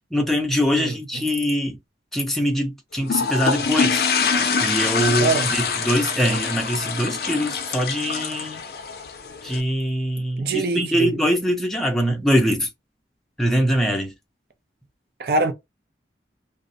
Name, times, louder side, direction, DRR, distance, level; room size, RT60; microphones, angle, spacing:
voice 1, 0.0-1.8 2.1-4.0 4.6-8.6 9.4-12.7 13.4-14.1, equal, ahead, 0.5 m, -23 dB
voice 2, 0.7-1.2 5.2-5.5 10.4-11.1 15.2-15.5, right 3 dB, 60° right, 0.4 m, -24 dB
sound 1, 3.0-9.6, left 5 dB, 60° left, 0.5 m, -24 dB
2.5 x 2.0 x 2.5 m
head